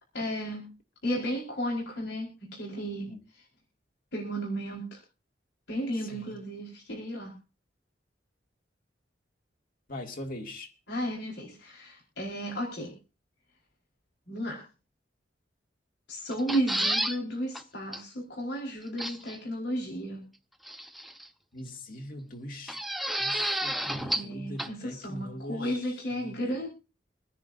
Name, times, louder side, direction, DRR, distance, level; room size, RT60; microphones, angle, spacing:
voice 1, 0.1-0.7 1.0-3.1 4.1-5.0 5.7-7.3 10.9-12.9 14.3-14.6 16.1-20.2 24.1-26.7, equal, 80° left, 4.9 m, -33 dB
voice 2, 9.9-10.7 21.5-22.8 23.2-26.6, left 1 dB, 50° left, 2.4 m, -41 dB
sound 1, 16.3-17.2 17.5-17.6 17.9-18.0 19.0-19.4 20.7-21.3 22.7-24.3 24.6-24.7, right 1 dB, ahead, 1.0 m, -31 dB
26.0 x 10.5 x 2.7 m
head